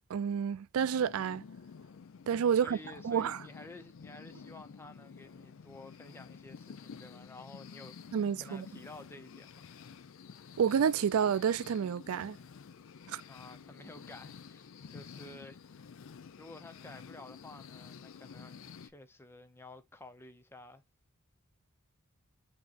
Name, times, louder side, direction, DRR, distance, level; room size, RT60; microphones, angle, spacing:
voice 1, 0.0-1.4 2.3-2.8 3.0-3.4 8.1-8.7 10.6-12.4 13.1-13.2, right 7 dB, 80° right, 0.4 m, -29 dB
sound 1, 0.7-18.9, left 6 dB, 70° left, 0.4 m, -51 dB
voice 2, 2.5-9.7 13.3-15.8 16.3-20.8, left 2 dB, 10° left, 0.6 m, -52 dB
7.2 x 2.9 x 2.5 m
head